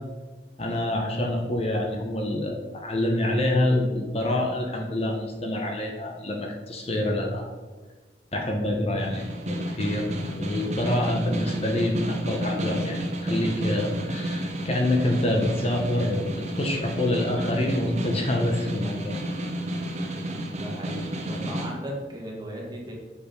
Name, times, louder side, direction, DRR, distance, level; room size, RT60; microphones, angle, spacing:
voice 1, 0.6-7.5 8.3-10.1 10.4-19.2, left 1 dB, 35° left, 1 dB, 0.9 m, -26 dB
Snare drum, 9.0-21.7, right 1 dB, 40° right, 1.0 m, -31 dB
voice 2, 20.3-22.9, right 1 dB, 25° right, -2 dB, 1.7 m, -37 dB
7.0 x 5.0 x 5.2 m, 1.3 s
head